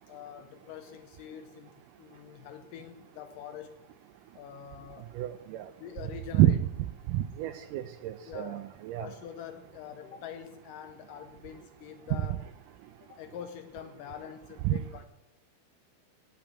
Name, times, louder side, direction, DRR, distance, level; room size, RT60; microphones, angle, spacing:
voice 1, 0.1-3.9 4.3-5.2 5.8-6.6 8.3-8.7 9.0-12.4 13.0-15.0, left 9 dB, 80° left, 8 dB, 2.0 m, -45 dB
voice 2, 5.2-5.6 6.3-6.5 7.1-9.1 14.7-14.8, right 14 dB, 85° right, 9 dB, 1.9 m, -27 dB
8.8 x 8.3 x 8.6 m, 0.97 s
omnidirectional pair, 4.4 m